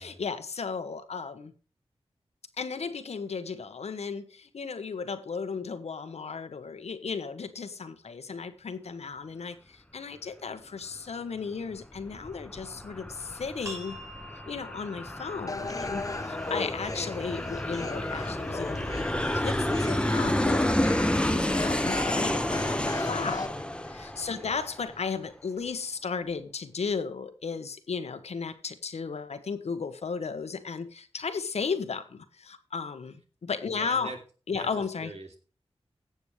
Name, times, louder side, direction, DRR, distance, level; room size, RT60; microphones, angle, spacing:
voice 1, 0.0-1.5 2.6-14.0 14.5-23.5 23.9-34.1 34.5-35.1, left 5 dB, 80° left, 1.2 m, -35 dB
Aircraft, 11.7-25.0, left 1 dB, 10° left, 1.0 m, -30 dB
sound 1, 13.6-19.0, equal, 25° right, 5.1 m, -49 dB
sound 2, 15.5-23.5, left 3 dB, 30° left, 0.6 m, -37 dB
voice 2, 24.3-24.7 33.7-34.2 34.5-34.7 35.0-35.4, right 2 dB, 80° right, 2.9 m, -42 dB
17.0 x 7.1 x 3.3 m
cardioid pair, 50°, 11 cm